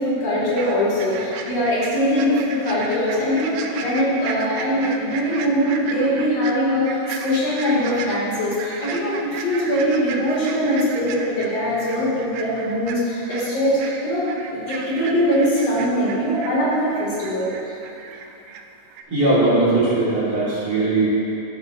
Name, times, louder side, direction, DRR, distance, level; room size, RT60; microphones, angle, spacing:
voice 1, 0.0-17.8, equal, 60° left, -7 dB, 3.2 m, -22 dB
sound 1, 0.6-18.6 18.9-19.0, right 5 dB, 85° right, 1.4 m, -35 dB
voice 2, 19.1-21.1, right 2 dB, 50° right, -10 dB, 2.5 m, -19 dB
13.5 x 7.0 x 2.6 m, 2.8 s
omnidirectional pair, 3.4 m